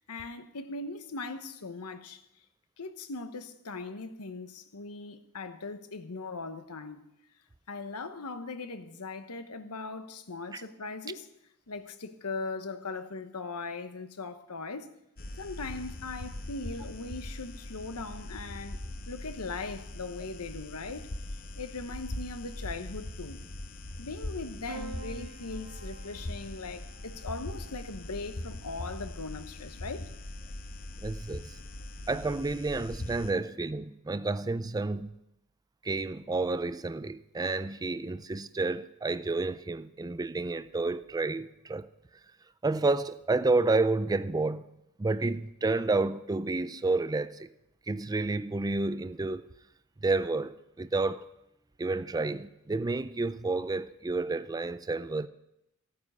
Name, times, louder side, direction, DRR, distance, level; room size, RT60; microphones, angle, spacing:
voice 1, 0.0-2.2 2.8-7.0 7.7-11.3 11.7-14.9 15.4-18.8 19.1-21.1 21.6-23.4 24.0-30.1, left 3 dB, 85° left, 1.1 m, -39 dB
sound 1, 15.2-33.3, left 1 dB, 40° left, 0.9 m, -41 dB
Piano, 24.7-29.1 30.3-31.0, right 4 dB, 90° right, 2.6 m, -49 dB
voice 2, 31.0-31.5 32.1-35.1 35.8-41.9 42.6-44.6 45.0-47.5 47.9-49.4 50.0-51.3 51.8-55.3, right 3 dB, 15° right, 0.4 m, -30 dB
15.5 x 9.4 x 5.5 m
head